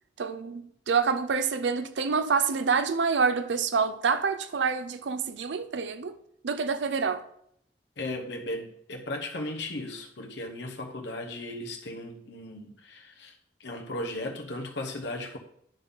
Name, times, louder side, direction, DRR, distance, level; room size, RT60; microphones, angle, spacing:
voice 1, 0.2-6.2 6.4-7.2, right 5 dB, 85° right, 0.5 m, -27 dB
voice 2, 8.0-13.3 13.6-15.4, left 1 dB, 80° left, 1.0 m, -36 dB
10.5 x 3.7 x 5.5 m
head